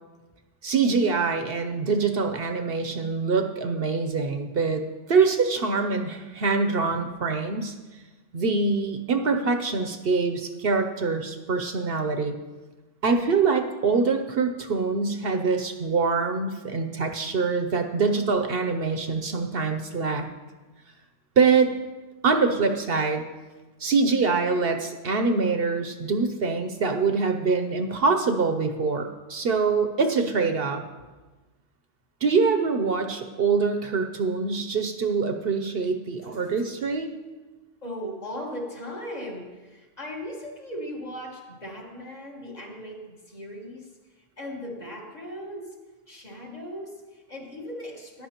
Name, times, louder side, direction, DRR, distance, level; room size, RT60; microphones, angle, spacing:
voice 1, 0.6-4.8 5.1-7.7 8.3-12.3 13.0-20.3 21.4-21.7 22.2-23.2 23.8-30.8 32.2-37.1, right 4 dB, 60° right, 6 dB, 0.9 m, -24 dB
voice 2, 36.2-36.6 37.8-44.0 44.4-45.8 46.1-48.3, equal, 35° left, -1 dB, 1.6 m, -38 dB
14.0 x 10.5 x 2.9 m, 1.2 s
omnidirectional pair, 1.2 m